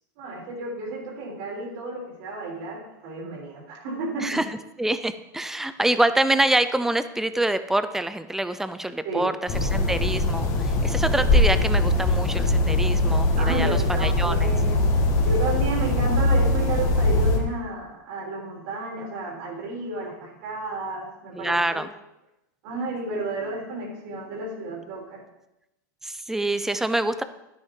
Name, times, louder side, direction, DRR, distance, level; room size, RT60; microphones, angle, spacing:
voice 1, 0.2-4.4 9.0-9.3 13.4-21.8 22.6-25.2, right 2 dB, 55° right, -2 dB, 3.6 m, -32 dB
voice 2, 4.8-9.3 9.6-14.6 21.3-21.9 26.0-27.2, right 1 dB, 5° right, 12 dB, 0.5 m, -26 dB
sound 1, 9.5-17.4, left 2 dB, 30° left, 1.8 m, -21 dB
11.5 x 9.9 x 3.8 m, 0.91 s
supercardioid pair, 145°, 10 cm